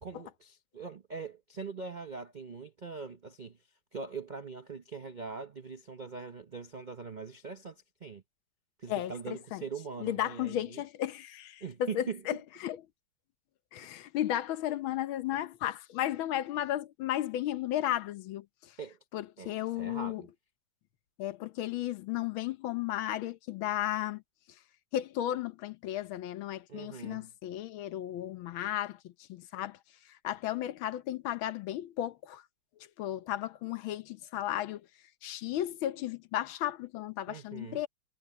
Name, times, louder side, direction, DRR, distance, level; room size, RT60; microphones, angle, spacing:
voice 1, 0.0-3.6 3.9-8.2 8.8-10.8 11.6-12.2 18.8-19.0 19.4-20.3 26.7-27.3 37.3-37.8, right 5 dB, 75° right, 0.4 m, -42 dB
voice 2, 8.9-9.6 10.0-12.8 13.7-18.8 19.1-20.2 21.2-24.2 24.9-29.8 30.0-32.4 33.0-34.8 35.2-37.9, left 12 dB, 75° left, 1.6 m, -34 dB
omnidirectional pair, 2.3 m